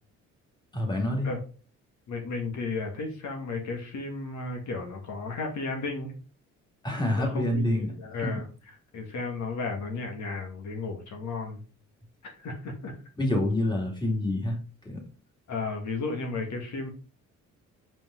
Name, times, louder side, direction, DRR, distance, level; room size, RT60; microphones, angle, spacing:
voice 1, 0.7-1.3 6.8-8.0 8.2-8.3 13.2-14.6 14.8-15.1, left 1 dB, 15° left, 0 dB, 2.5 m, -27 dB
voice 2, 2.1-6.1 7.2-8.5 8.9-11.6 12.4-12.9 15.5-16.9, left 3 dB, 65° left, 2 dB, 2.2 m, -34 dB
5.3 x 5.2 x 3.8 m, 0.36 s
cardioid pair, 90°, 30 cm